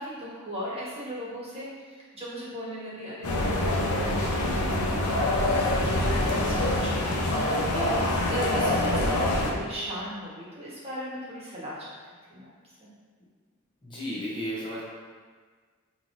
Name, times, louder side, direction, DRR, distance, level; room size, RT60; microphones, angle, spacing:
voice 1, 0.0-11.9 12.3-12.5 12.8-12.9, equal, 30° right, -7 dB, 1.2 m, -37 dB
sound 1, 3.2-9.5, left 1 dB, 80° left, 0.6 m, -25 dB
voice 2, 13.8-14.8, equal, 20° left, -7 dB, 0.7 m, -33 dB
5.4 x 3.0 x 2.6 m, 1.5 s
head